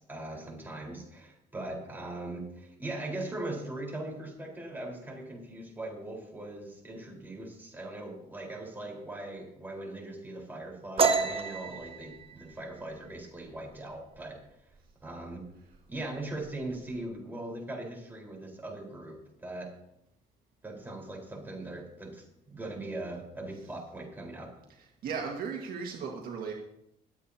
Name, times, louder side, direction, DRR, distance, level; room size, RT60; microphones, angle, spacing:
voice 1, 0.0-14.4 15.0-15.4 15.9-19.7 20.6-24.5, right 2 dB, 10° right, -1 dB, 4.4 m, -40 dB
sound 1, 11.0-14.4 14.7-15.1 15.4-16.0 16.2-17.0, right 5 dB, 35° right, 1.1 m, -30 dB
voice 2, 25.0-26.5, right 6 dB, 60° right, 0 dB, 1.8 m, -36 dB
24.5 x 8.4 x 2.9 m, 0.80 s
cardioid pair, 110°, 17 cm